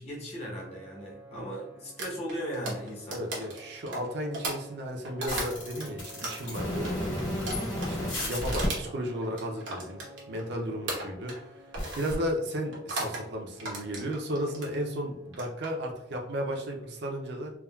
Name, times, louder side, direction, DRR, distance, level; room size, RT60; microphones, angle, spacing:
voice 1, 0.0-3.2, equal, 35° left, -3 dB, 0.7 m, -37 dB
sound 1, 0.6-16.9, right 1 dB, 5° right, 0.6 m, -53 dB
sound 2, 2.0-5.9 6.2-10.5 10.9-11.5 11.7-12.1 12.7-13.2 13.6-14.7 15.2-15.7, right 2 dB, 85° right, 0.9 m, -37 dB
voice 2, 3.1-10.0 10.3-11.6 12.0-17.5, equal, 60° right, 1 dB, 0.5 m, -34 dB
sound 3, 5.3-8.7 11.7-12.2, left 1 dB, 80° left, 1.5 m, -32 dB
3.5 x 2.2 x 2.2 m, 0.79 s
head